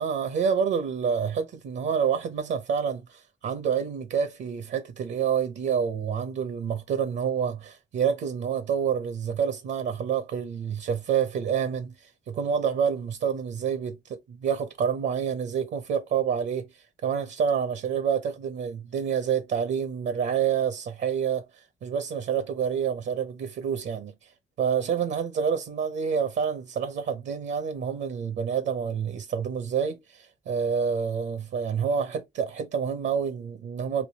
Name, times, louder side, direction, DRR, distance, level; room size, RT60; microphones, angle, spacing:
voice 1, 0.0-11.9 12.3-16.7 17.0-21.4 21.8-24.1 24.6-34.1, right 7 dB, 65° right, 0.7 m, -28 dB
3.4 x 2.6 x 2.7 m
cardioid pair, 90°, 20 cm